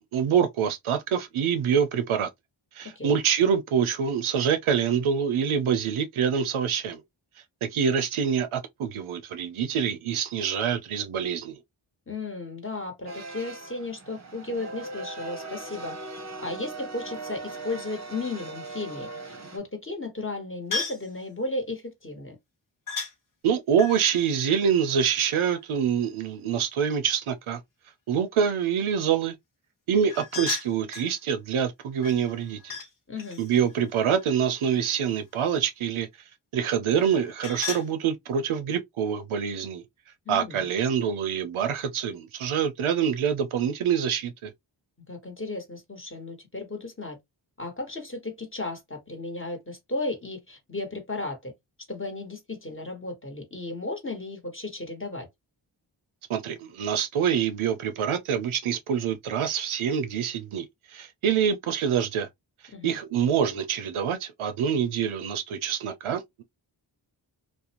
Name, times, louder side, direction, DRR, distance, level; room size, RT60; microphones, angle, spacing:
voice 1, 0.1-2.3 2.7-7.0 7.6-11.6 23.4-27.6 28.1-29.4 29.9-32.7 33.4-36.1 36.5-39.8 40.3-44.5 56.3-62.3 62.8-66.4, right 7 dB, 80° right, 0.6 m, -26 dB
voice 2, 12.1-16.0 16.4-19.1 19.5-22.4 33.1-33.4 40.2-40.7 45.1-47.2 47.6-51.5 51.9-55.3 62.7-63.0, left 2 dB, 25° left, 1.2 m, -34 dB
sound 1, 13.1-19.6, right 3 dB, 35° right, 0.7 m, -39 dB
sound 2, 20.7-21.1 22.9-23.1 23.7-25.6 30.1-31.1 32.0-32.9 33.2-35.1 36.9-37.9, left 4 dB, 40° left, 0.9 m, -36 dB
2.5 x 2.1 x 2.8 m
cardioid pair, 40°, 49 cm